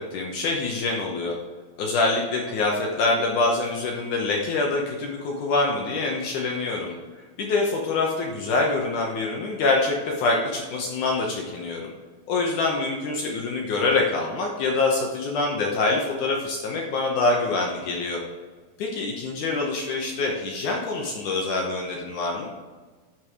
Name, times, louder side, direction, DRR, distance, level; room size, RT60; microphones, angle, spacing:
voice 1, 0.0-1.4 1.8-7.0 7.4-11.9 12.3-18.2 18.8-22.5, left 3 dB, 75° left, 0 dB, 1.9 m, -25 dB
11.0 x 4.7 x 4.9 m, 1.4 s
omnidirectional pair, 4.8 m